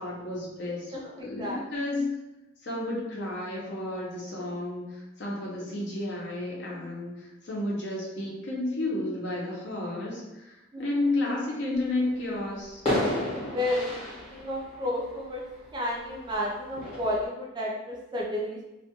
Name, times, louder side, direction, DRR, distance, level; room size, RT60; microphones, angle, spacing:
voice 1, 0.0-2.1 2.6-12.8, left 2 dB, 60° left, -4 dB, 0.7 m, -32 dB
voice 2, 0.9-1.6 10.7-10.8 13.5-15.4 15.7-18.6, left 1 dB, 20° right, -2 dB, 0.3 m, -32 dB
sound 1, 12.1-12.2 12.9-16.0 16.8-17.2, left 1 dB, 30° left, 0.8 m, -31 dB
2.2 x 2.2 x 2.8 m, 1.0 s
head